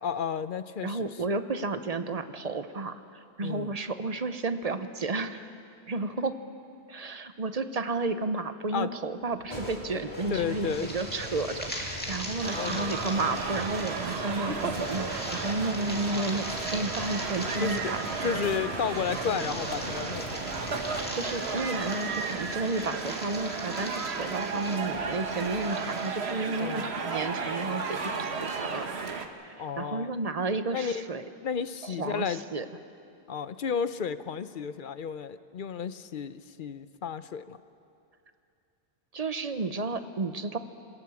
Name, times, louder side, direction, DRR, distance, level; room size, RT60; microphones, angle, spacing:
voice 1, 0.0-1.3 3.4-3.7 6.2-6.3 8.7-8.9 10.3-10.9 12.5-12.9 17.6-17.8 18.2-20.5 26.6-26.9 29.6-30.1 30.7-31.0 31.4-32.4 33.3-37.6, left 7 dB, 55° left, 13 dB, 0.8 m, -32 dB
voice 2, 0.8-5.5 5.9-6.3 6.9-18.1 21.1-28.9 29.4-31.2 31.8-32.7 39.1-40.6, right 3 dB, 35° right, 10 dB, 0.9 m, -32 dB
sound 1, 9.2-25.9, equal, 35° left, 3.7 m, -42 dB
sound 2, 10.7-26.3, equal, 10° left, 2.3 m, -41 dB
sound 3, 12.4-29.3, right 4 dB, 70° right, 1.5 m, -34 dB
27.0 x 18.0 x 7.1 m, 2.6 s
omnidirectional pair, 1.1 m